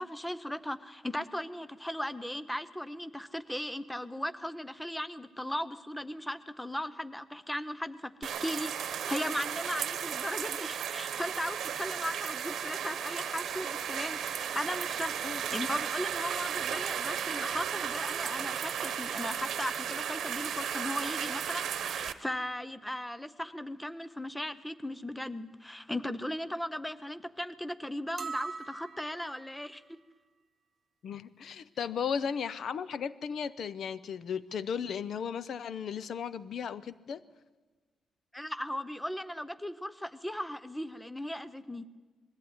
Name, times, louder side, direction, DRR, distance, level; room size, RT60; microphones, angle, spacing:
voice 1, 0.0-15.1 15.5-30.0 38.3-41.9, left 1 dB, 5° left, 13 dB, 0.6 m, -37 dB
sound 1, 8.2-22.1, right 9 dB, 65° right, 1.1 m, -35 dB
sound 2, 28.2-29.5, right 5 dB, 40° right, 0.7 m, -40 dB
voice 2, 31.0-37.2, left 7 dB, 55° left, 17 dB, 0.6 m, -35 dB
20.5 x 14.5 x 9.5 m, 1.3 s
wide cardioid pair, 170°, 0 cm